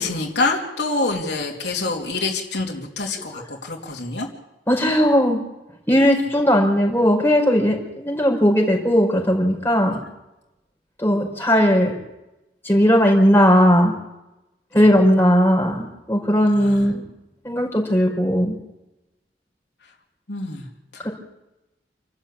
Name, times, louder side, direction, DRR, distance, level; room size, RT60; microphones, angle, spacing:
voice 1, 0.0-4.3 9.8-10.0 14.7-14.8 16.5-16.9 20.3-20.7 20.9-21.1, left 3 dB, 75° left, -1 dB, 3.3 m, -26 dB
voice 2, 4.7-5.4 5.9-10.0 11.0-11.9 12.6-13.9 14.7-17.0 17.4-18.6 21.0-21.1, equal, 15° left, 0 dB, 5.1 m, -17 dB
28.5 x 13.0 x 8.6 m, 0.97 s
head